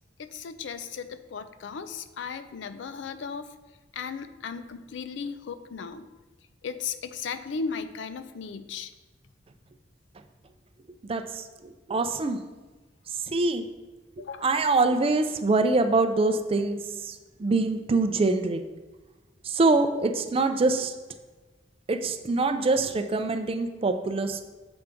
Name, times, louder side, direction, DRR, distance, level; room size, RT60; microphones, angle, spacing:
voice 1, 0.2-3.5 3.9-6.1 6.6-8.9 14.2-14.5, left 5 dB, 80° left, 12 dB, 0.4 m, -36 dB
voice 2, 11.0-12.4 13.2-13.6 14.2-18.6 19.4-20.9 21.9-24.4, right 3 dB, 30° right, 8 dB, 0.4 m, -25 dB
6.9 x 3.5 x 5.2 m, 1.2 s
head